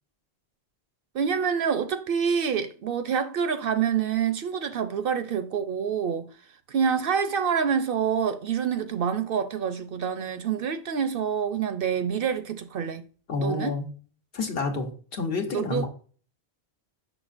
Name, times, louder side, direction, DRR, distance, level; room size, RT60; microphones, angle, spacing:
voice 1, 1.1-6.3 6.7-13.0 13.4-13.7 15.5-15.9, right 7 dB, 65° right, 0.7 m, -27 dB
voice 2, 13.3-13.9 14.3-15.9, left 3 dB, 60° left, 1.2 m, -29 dB
6.4 x 6.0 x 2.5 m
omnidirectional pair, 1.1 m